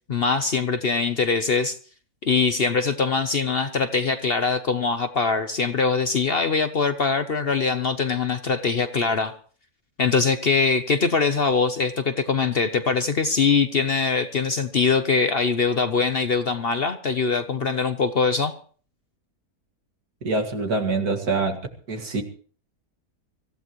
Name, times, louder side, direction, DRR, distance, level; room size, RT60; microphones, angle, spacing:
voice 1, 0.1-1.8 2.2-9.3 10.0-18.5, left 4 dB, 45° left, 0.9 m, -22 dB
voice 2, 20.2-21.6 21.9-22.2, right 3 dB, 75° right, 2.4 m, -24 dB
24.5 x 15.0 x 3.1 m
omnidirectional pair, 1.6 m